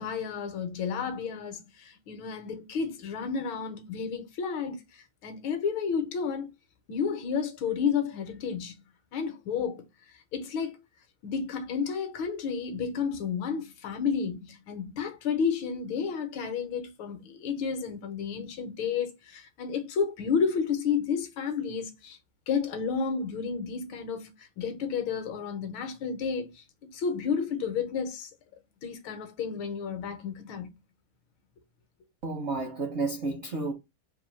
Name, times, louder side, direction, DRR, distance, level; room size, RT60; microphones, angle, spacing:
voice 1, 0.0-6.5 6.9-8.8 9.1-9.9 10.3-10.8 11.2-22.2 22.5-28.3 28.8-30.7, left 6 dB, 75° left, 1.5 m, -31 dB
voice 2, 32.2-33.7, right 3 dB, 60° right, 0.7 m, -31 dB
3.7 x 2.6 x 4.3 m
omnidirectional pair, 2.4 m